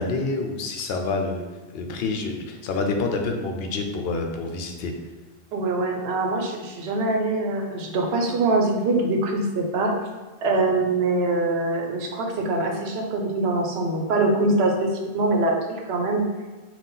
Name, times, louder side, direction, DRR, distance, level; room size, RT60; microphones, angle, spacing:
voice 1, 0.0-1.4 1.7-4.9, left 3 dB, 70° left, 4 dB, 0.8 m, -27 dB
voice 2, 5.5-9.9 10.4-16.2, right 2 dB, 75° right, 2 dB, 0.9 m, -23 dB
4.0 x 2.4 x 3.7 m, 1.3 s
omnidirectional pair, 1.1 m